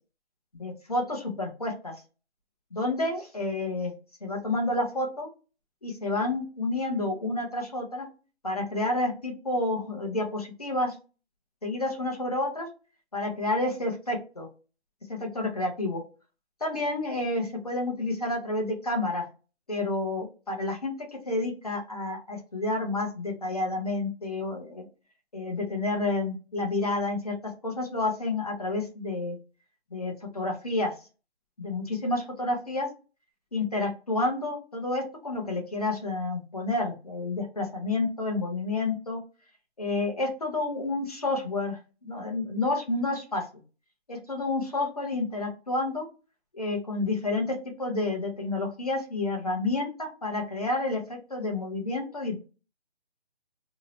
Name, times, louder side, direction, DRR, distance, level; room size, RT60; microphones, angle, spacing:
voice 1, 0.5-2.0 2.7-3.9 4.2-5.3 5.8-8.1 8.4-11.0 11.6-12.7 13.1-14.5 15.1-16.0 16.6-19.3 19.7-20.9 21.3-24.8 25.3-29.4 29.9-30.9 31.6-32.9 33.5-39.2 39.8-43.5 44.1-46.0 46.5-52.4, left 2 dB, 35° left, 2 dB, 0.6 m, -30 dB
2.7 x 2.0 x 2.7 m, 0.33 s
hypercardioid pair, 175°, 33 cm